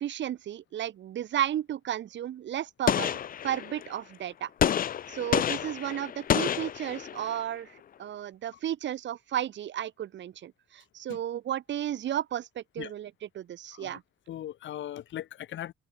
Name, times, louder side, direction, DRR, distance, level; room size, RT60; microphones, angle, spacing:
voice 1, 0.0-3.2 3.4-4.5 5.1-14.0, right 11 dB, 65° right, 1.7 m, -33 dB
Gunshot gunfire, 2.9-3.9 4.6-7.4, left 9 dB, 45° left, 0.5 m, -29 dB
voice 2, 14.3-15.7, left 12 dB, 70° left, 2.0 m, -39 dB
cardioid pair, 90°, 20 cm